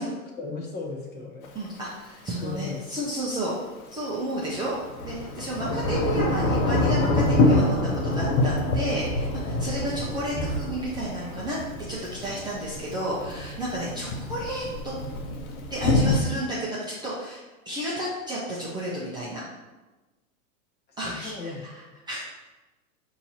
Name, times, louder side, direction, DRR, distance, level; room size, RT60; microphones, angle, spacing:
voice 1, 0.0-1.5 2.4-2.9 5.6-5.8 21.0-21.7, left 4 dB, 25° left, 0 dB, 0.8 m, -36 dB
Thunder / Rain, 1.4-1.5 4.5-16.2, left 2 dB, 80° left, 0.9 m, -26 dB
voice 2, 1.5-3.5 3.9-4.8 5.0-11.6 11.9-15.0 15.7-17.4 17.7-19.4 21.0-22.4, right 1 dB, 10° right, -7 dB, 0.5 m, -32 dB
4.4 x 2.8 x 4.2 m, 1.1 s
hypercardioid pair, 135°, 42 cm